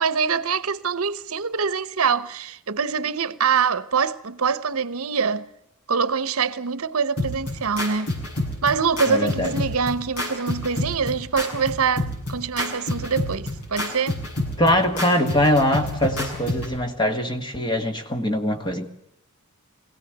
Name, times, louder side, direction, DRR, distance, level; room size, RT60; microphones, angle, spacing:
voice 1, 0.0-5.5 5.9-8.1 8.6-14.2, right 6 dB, 70° right, 0.9 m, -24 dB
sound 1, 7.2-16.8, left 1 dB, 85° left, 7.6 m, -29 dB
voice 2, 9.1-9.5 14.6-18.9, left 1 dB, 20° left, 2.0 m, -22 dB
23.0 x 17.0 x 8.0 m
head